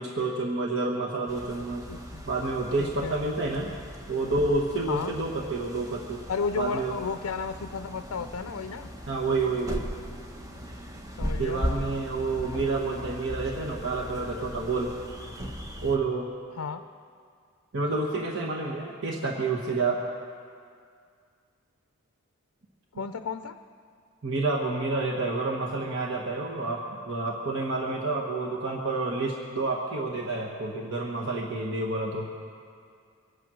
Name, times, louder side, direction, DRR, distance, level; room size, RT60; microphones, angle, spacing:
voice 1, 0.0-1.9 2.3-3.7 4.1-6.3 6.6-6.9 9.1-9.9 11.4-15.0 15.8-16.3 17.7-20.0 24.2-32.3, right 3 dB, 60° right, -1 dB, 1.2 m, -29 dB
sound 1, 1.3-16.0, equal, 15° right, 1.0 m, -38 dB
voice 2, 1.9-2.2 2.8-3.2 4.9-5.1 6.3-8.9 11.2-11.6 16.5-16.8 22.9-23.6, left 5 dB, 70° left, 9 dB, 0.5 m, -33 dB
23.5 x 9.0 x 6.2 m, 2.2 s
head